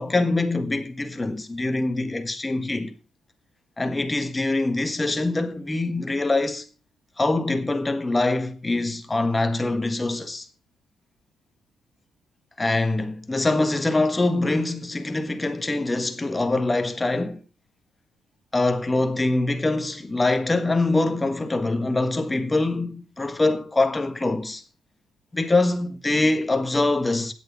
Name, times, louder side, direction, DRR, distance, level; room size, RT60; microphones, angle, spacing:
voice 1, 0.0-2.9 3.8-6.7 7.2-10.5 12.6-17.4 18.5-24.6 25.3-27.3, left 2 dB, 20° left, 1.6 m, -24 dB
9.6 x 8.0 x 6.0 m
cardioid pair, 90°, 0 cm